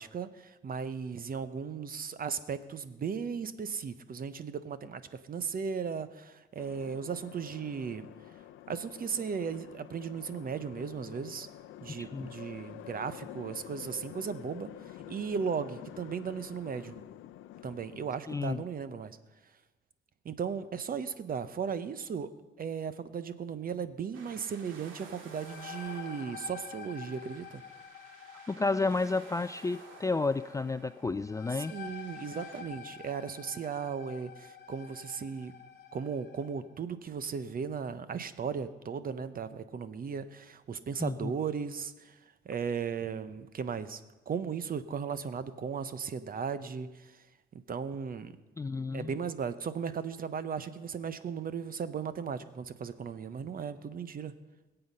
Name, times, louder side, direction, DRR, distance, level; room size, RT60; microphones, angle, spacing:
voice 1, 0.0-8.1 8.7-11.5 11.8-14.7 15.1-17.0 17.6-19.2 20.2-22.3 22.6-27.6 31.7-35.5 35.9-42.2 42.4-44.0 44.3-47.2 47.7-48.4 48.9-54.3, right 6 dB, 45° right, 13 dB, 0.9 m, -36 dB
sound 1, 6.6-18.2, left 12 dB, 80° left, 0.6 m, -48 dB
voice 2, 12.0-12.3 18.3-18.6 28.5-31.7 41.0-41.3 48.6-49.1, left 3 dB, 15° left, 13 dB, 0.3 m, -31 dB
sound 2, 24.1-32.6, right 4 dB, 90° right, 2.0 m, -54 dB
sound 3, 25.1-36.6, left 7 dB, 60° left, 1.2 m, -48 dB
21.0 x 8.0 x 5.5 m, 1.1 s
cardioid pair, 90°, 20 cm